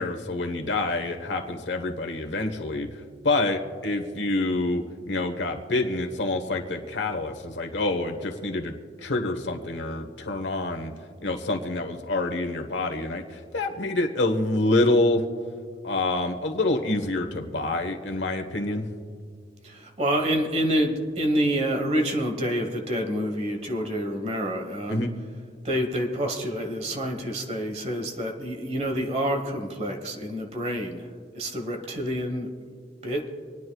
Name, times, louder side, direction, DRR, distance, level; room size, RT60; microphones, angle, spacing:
voice 1, 0.0-2.9 3.2-8.7 9.0-10.9 11.2-15.2 15.8-18.9 24.9-25.1, left 2 dB, 90° left, 4 dB, 1.1 m, -27 dB
voice 2, 19.6-25.0 25.6-31.1 31.3-32.5 33.0-33.2, equal, 35° right, 4 dB, 1.2 m, -27 dB
27.0 x 9.6 x 2.3 m, 2.1 s
head